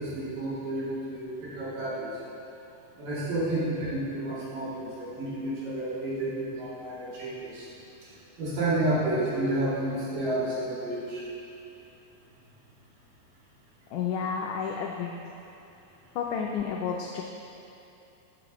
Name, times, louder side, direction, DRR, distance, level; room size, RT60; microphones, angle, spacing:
voice 1, 0.0-2.1 3.0-7.7 8.0-8.1 8.4-11.2, right 1 dB, 70° right, -9 dB, 3.6 m, -30 dB
voice 2, 13.9-15.3 16.2-17.2, left 6 dB, 85° left, 1 dB, 1.8 m, -31 dB
12.0 x 7.7 x 3.0 m, 2.8 s
omnidirectional pair, 4.2 m